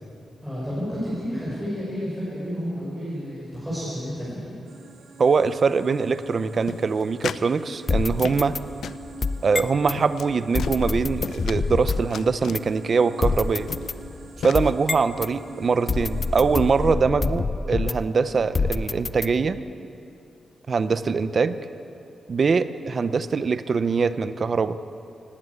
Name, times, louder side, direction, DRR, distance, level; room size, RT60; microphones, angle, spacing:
voice 1, 0.4-4.5, equal, ahead, -9 dB, 5.7 m, -31 dB
sound 1, 4.7-17.0, right 3 dB, 55° right, 1.4 m, -45 dB
voice 2, 5.2-8.6 9.4-13.7 14.4-19.6 20.7-21.6 22.3-24.8, right 5 dB, 40° right, 12 dB, 0.7 m, -23 dB
sound 2, 6.7-7.5 7.8-8.6 8.8-9.0 9.5-9.6 9.9-10.3 10.6-11.6 11.9-12.6 13.3-13.4 13.7-14.0 14.4-14.7, left 7 dB, 80° left, 0.5 m, -35 dB
sound 3, 7.9-10.0 10.5-12.2 12.5-12.6 13.2-15.3 15.9-18.2 18.5-19.6, left 4 dB, 30° left, 0.5 m, -27 dB
19.0 x 16.5 x 8.3 m, 2.7 s
wide cardioid pair, 160°, 0 cm